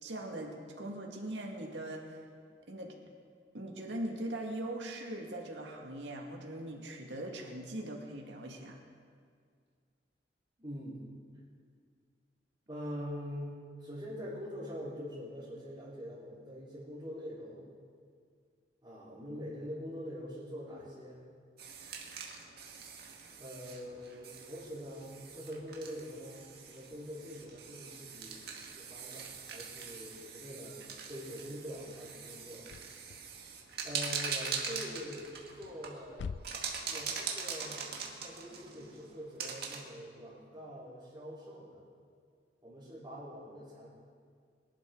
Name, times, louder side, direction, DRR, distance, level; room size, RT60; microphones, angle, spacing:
voice 1, 0.0-2.2 2.7-2.9 3.5-8.8, right 1 dB, 80° right, 0 dB, 2.1 m, -41 dB
voice 2, 10.6-11.0 12.7-17.7 18.8-21.2 23.4-32.7 33.8-35.3 35.6-36.3 36.9-41.8 42.6-43.9, equal, 25° right, -12 dB, 3.9 m, -44 dB
sound 1, 21.6-39.8, right 5 dB, 60° right, 1.9 m, -42 dB
sound 2, 32.6-40.5, left 5 dB, 75° left, 0.4 m, -50 dB
23.0 x 11.5 x 3.9 m, 2.1 s
head